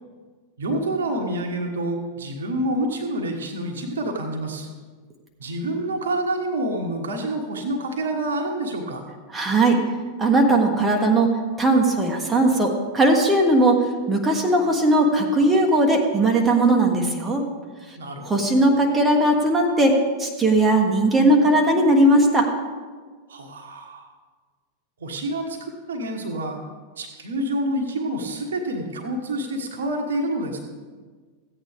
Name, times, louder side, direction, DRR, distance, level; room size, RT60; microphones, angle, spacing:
voice 1, 0.6-4.7 5.4-9.0 18.0-18.2 23.3-24.1 25.0-26.6 27.0-30.6, right 1 dB, 65° right, 2 dB, 1.4 m, -27 dB
voice 2, 9.3-9.8 10.2-11.3 11.6-13.8 14.1-17.4 18.2-19.9 20.2-22.5, right 1 dB, 15° right, 0 dB, 1.4 m, -18 dB
15.0 x 8.7 x 3.6 m, 1.5 s
figure-of-eight pair, 90°, 0 cm